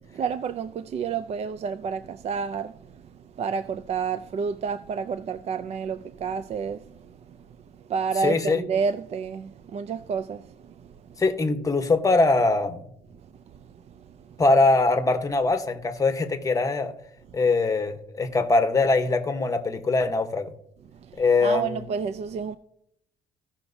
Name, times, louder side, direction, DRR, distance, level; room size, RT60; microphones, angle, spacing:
voice 1, 0.1-7.5 7.7-10.9 13.5-13.6 13.9-14.4 21.0-22.6, right 6 dB, 40° right, 0.4 m, -30 dB
voice 2, 8.2-8.6 11.2-12.8 14.4-16.9 17.3-20.5 21.2-21.8, left 3 dB, 20° left, 1.0 m, -22 dB
16.0 x 5.8 x 2.7 m
cardioid pair, 110°, 17 cm